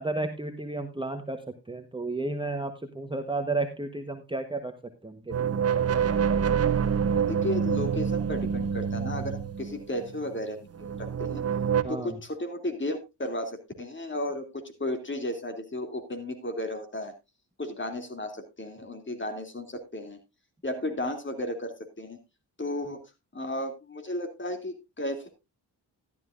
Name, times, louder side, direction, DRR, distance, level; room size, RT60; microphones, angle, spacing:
voice 1, 0.0-4.7 5.0-5.6 11.8-12.2, right 2 dB, 10° right, 6 dB, 1.1 m, -32 dB
sound 1, 5.3-10.2 10.7-11.8, right 7 dB, 35° right, 0.9 m, -26 dB
voice 2, 7.1-11.4 11.9-17.1 17.6-20.2 20.6-22.2 22.6-23.0 23.3-25.3, left 1 dB, 25° left, 6 dB, 2.8 m, -34 dB
13.5 x 12.0 x 2.5 m, 0.24 s
cardioid pair, 85°, 41 cm